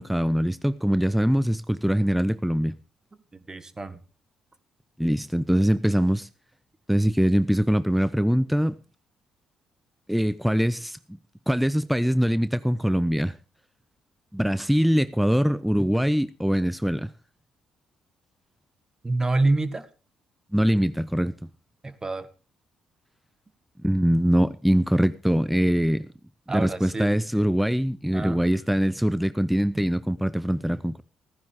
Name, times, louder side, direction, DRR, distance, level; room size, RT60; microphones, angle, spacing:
voice 1, 0.0-2.7 5.0-6.3 6.9-8.8 10.1-11.0 11.5-13.3 14.3-17.1 20.5-21.3 23.8-26.1 26.5-31.0, equal, ahead, 0.7 m, -23 dB
voice 2, 3.3-4.0 19.0-19.9 21.8-22.3 26.5-27.1 28.1-28.4, right 2 dB, 25° right, 1.7 m, -27 dB
15.5 x 15.0 x 3.6 m
hypercardioid pair, 45°, 2 cm